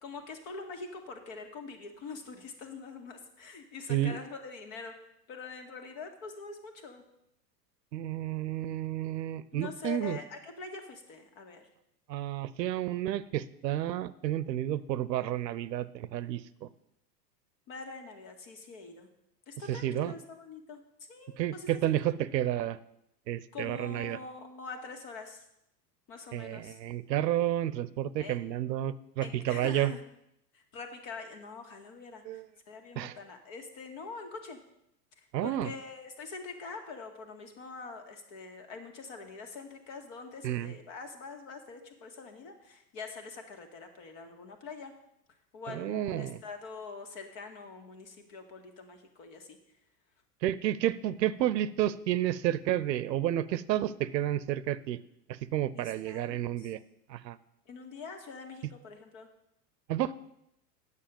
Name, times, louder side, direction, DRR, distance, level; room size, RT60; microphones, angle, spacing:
voice 1, 0.0-5.0 5.3-7.0 9.5-11.7 17.7-19.1 19.5-20.8 21.1-21.7 23.5-25.4 26.1-26.8 28.2-28.4 29.2-30.0 30.5-34.6 35.2-44.9 45.5-49.6 55.7-56.7 57.7-59.3, left 4 dB, 55° left, 5 dB, 2.0 m, -44 dB
voice 2, 7.9-10.2 12.1-16.7 19.7-20.1 21.4-22.8 23.3-24.2 26.3-29.9 32.3-32.4 33.0-33.1 35.3-35.7 40.4-40.7 45.7-46.4 50.4-55.0 55.3-56.8 57.1-57.4 59.9-60.1, right 12 dB, 80° right, 17 dB, 0.7 m, -31 dB
9.2 x 6.8 x 7.0 m, 0.82 s
hypercardioid pair, 105°, 49 cm